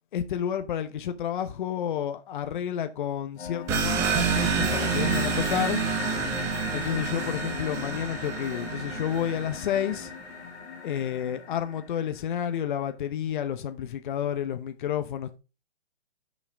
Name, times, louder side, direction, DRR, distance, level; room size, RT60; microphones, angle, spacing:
voice 1, 0.1-5.9 6.7-10.1 10.8-15.4, left 9 dB, 45° left, 0.9 m, -30 dB
sound 1, 3.4-12.4, left 6 dB, 80° left, 2.3 m, -37 dB
sound 2, 3.7-9.9, right 7 dB, 10° right, 0.4 m, -29 dB
6.4 x 5.8 x 4.7 m
hypercardioid pair, 145°, 33 cm